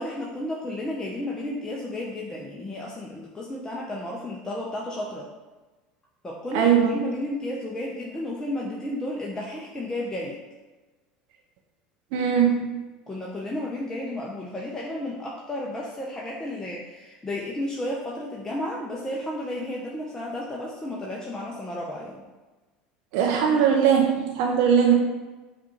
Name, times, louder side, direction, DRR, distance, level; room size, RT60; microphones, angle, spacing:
voice 1, 0.0-5.3 6.2-10.4 13.1-22.2, left 1 dB, 15° left, -3 dB, 0.6 m, -32 dB
voice 2, 6.5-7.0 12.1-12.8 23.1-24.9, right 7 dB, 65° right, 0 dB, 0.5 m, -20 dB
5.7 x 2.5 x 3.0 m, 1.2 s
hypercardioid pair, 80°, 4 cm